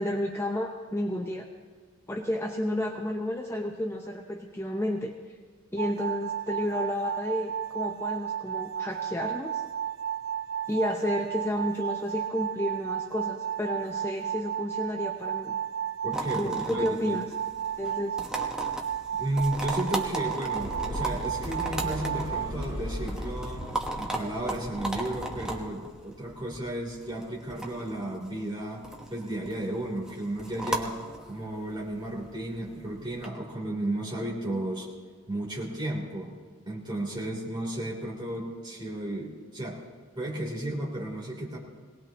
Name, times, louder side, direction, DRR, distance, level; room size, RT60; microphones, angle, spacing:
voice 1, 0.0-1.5 2.1-5.1 5.7-9.6 10.7-15.5 16.4-17.2 17.8-18.3, left 1 dB, 10° left, 1 dB, 0.7 m, -31 dB
sound 1, 5.8-22.6, right 9 dB, 85° right, 0.6 m, -33 dB
voice 2, 16.0-17.2 19.2-23.6 23.9-28.8 29.1-31.0 31.2-34.9 35.3-36.4 36.7-39.8 40.1-41.6, right 1 dB, 20° right, -4 dB, 3.3 m, -33 dB
sound 2, 16.1-33.3, right 1 dB, 5° right, 1.1 m, -37 dB
sound 3, 20.5-25.7, left 1 dB, 80° left, 3.6 m, -38 dB
22.0 x 18.5 x 3.0 m, 1.6 s
head